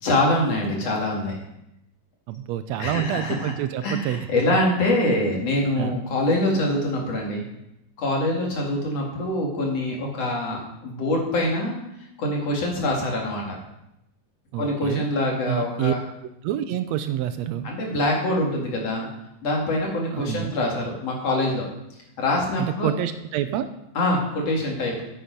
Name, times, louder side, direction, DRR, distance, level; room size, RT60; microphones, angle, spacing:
voice 1, 0.0-1.4 2.8-3.5 3.8-7.5 8.0-11.8 12.2-13.6 14.6-16.0 17.6-19.1 19.4-21.6 22.2-22.9 23.9-25.0, left 1 dB, 55° left, -1 dB, 3.1 m, -24 dB
voice 2, 2.3-4.4 5.8-6.0 14.5-15.1 15.4-15.9 16.4-17.7 20.1-20.5 22.6-23.7, right 11 dB, 80° right, 10 dB, 1.6 m, -27 dB
9.5 x 8.9 x 5.3 m, 0.84 s
omnidirectional pair, 3.6 m